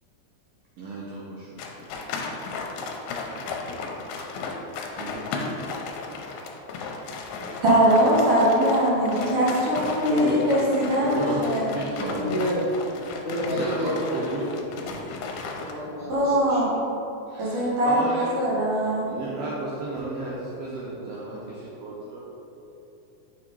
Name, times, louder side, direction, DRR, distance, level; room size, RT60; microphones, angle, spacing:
voice 1, 0.8-1.6 4.9-5.5 11.0-12.3 13.5-14.5 17.3-18.3 19.1-22.2, right 2 dB, 85° right, -5 dB, 1.4 m, -33 dB
sound 1, 1.6-15.7, left 4 dB, 85° left, 2.2 m, -35 dB
voice 2, 7.4-11.6 14.9-15.4 16.1-16.7 17.4-19.1, equal, 60° right, -6 dB, 1.8 m, -22 dB
voice 3, 9.8-10.4 11.1-11.4 12.1-12.6 13.1-14.7 15.5-16.7, equal, 55° left, -12 dB, 0.8 m, -30 dB
5.9 x 3.7 x 4.6 m, 3.0 s
omnidirectional pair, 3.6 m